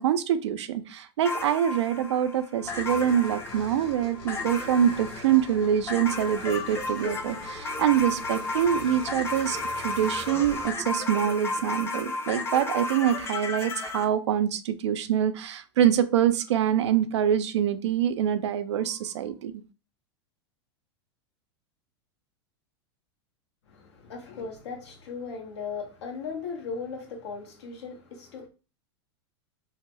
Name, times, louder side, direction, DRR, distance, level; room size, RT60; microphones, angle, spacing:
voice 1, 0.0-19.6, right 9 dB, 85° right, 0.4 m, -25 dB
sound 1, 1.2-14.1, left 3 dB, 20° left, 0.5 m, -33 dB
sound 2, 2.6-10.7, left 2 dB, 50° left, 0.9 m, -45 dB
voice 2, 23.7-28.5, left 5 dB, 80° left, 0.9 m, -37 dB
2.8 x 2.2 x 2.9 m
hypercardioid pair, 115°, 14 cm